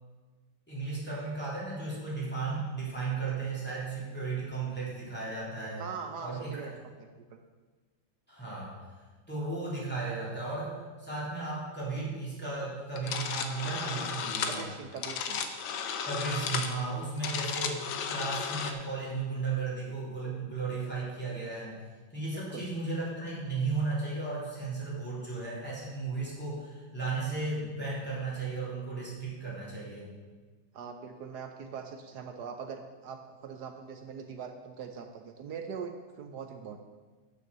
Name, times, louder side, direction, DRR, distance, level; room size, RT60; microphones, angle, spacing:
voice 1, 0.7-5.8 6.2-6.7 8.3-8.8 9.3-14.6 16.1-21.8 22.1-30.1, right 3 dB, 5° left, -7 dB, 3.3 m, -35 dB
voice 2, 5.8-7.4 14.4-15.4 22.3-22.7 30.7-36.8, right 6 dB, 65° right, 6 dB, 1.1 m, -42 dB
sound 1, 13.0-18.7, left 6 dB, 75° left, 1.5 m, -34 dB
9.1 x 6.8 x 6.5 m, 1.3 s
omnidirectional pair, 2.2 m